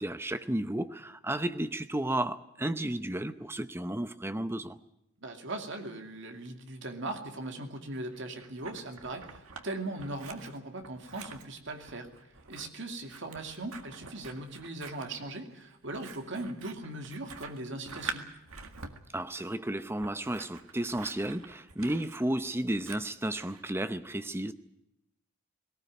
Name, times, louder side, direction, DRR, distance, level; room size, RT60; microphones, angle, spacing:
voice 1, 0.0-4.8 19.1-24.5, right 1 dB, 10° right, 0.7 m, -33 dB
voice 2, 5.2-18.3, right 2 dB, 55° right, 2.5 m, -39 dB
Scissors, 8.1-9.7 10.0-23.6, right 5 dB, 85° right, 1.9 m, -46 dB
18.5 x 18.0 x 9.4 m
head